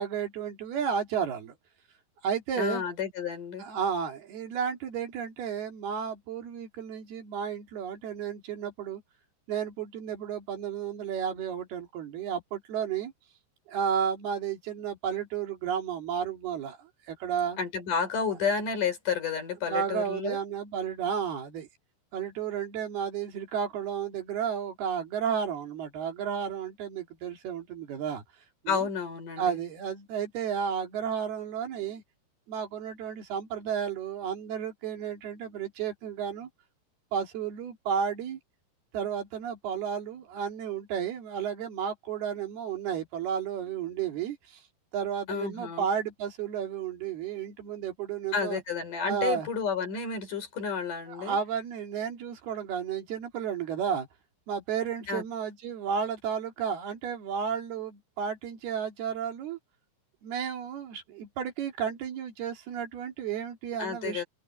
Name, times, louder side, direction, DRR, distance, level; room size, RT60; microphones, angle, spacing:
voice 1, 0.0-1.6 2.2-2.8 3.6-9.0 9.5-13.1 13.7-17.6 19.6-21.7 22.1-28.2 28.6-28.9 29.4-32.0 32.5-36.5 37.1-38.4 38.9-44.6 44.9-48.6 49.0-49.5 51.1-54.1 54.5-59.6 60.2-64.2, right 7 dB, 70° right, 4.5 m, -32 dB
voice 2, 2.6-3.7 17.6-20.4 28.7-29.6 45.3-45.9 48.3-51.4 55.1-55.2 63.8-64.2, left 6 dB, 50° left, 5.8 m, -31 dB
open air
omnidirectional pair, 4.7 m